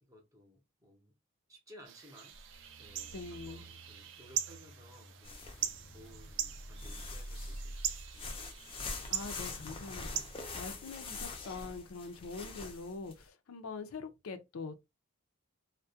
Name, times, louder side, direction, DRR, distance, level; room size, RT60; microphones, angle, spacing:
voice 1, 0.0-1.1 1.5-2.4 2.8-5.4 5.9-8.3 9.0-9.2, equal, 15° right, 0.7 m, -58 dB
sound 1, 1.8-11.2, right 10 dB, 60° right, 0.3 m, -42 dB
sound 2, 2.3-12.6 13.0-13.3, right 1 dB, 75° right, 0.8 m, -51 dB
voice 2, 3.1-3.6 9.1-14.7, left 4 dB, 80° left, 0.5 m, -44 dB
sound 3, 5.2-6.0 6.5-13.1, left 4 dB, 25° left, 0.4 m, -44 dB
2.2 x 2.1 x 2.6 m
head